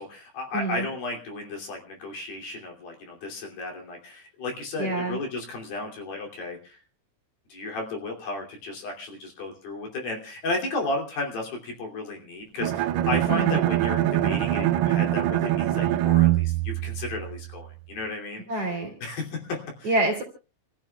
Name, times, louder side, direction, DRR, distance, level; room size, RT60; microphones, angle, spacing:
voice 1, 0.0-6.8 7.5-18.7 19.0-19.9, left 2 dB, 50° left, 1 dB, 4.2 m, -34 dB
voice 2, 0.5-0.9 4.8-5.2 13.3-13.6 18.5-18.9 19.8-20.2, right 2 dB, 35° right, 1 dB, 3.0 m, -26 dB
Bowed string instrument, 12.6-17.6, right 14 dB, 80° right, 2.4 m, -23 dB
29.0 x 14.5 x 2.3 m, 0.35 s
omnidirectional pair, 5.7 m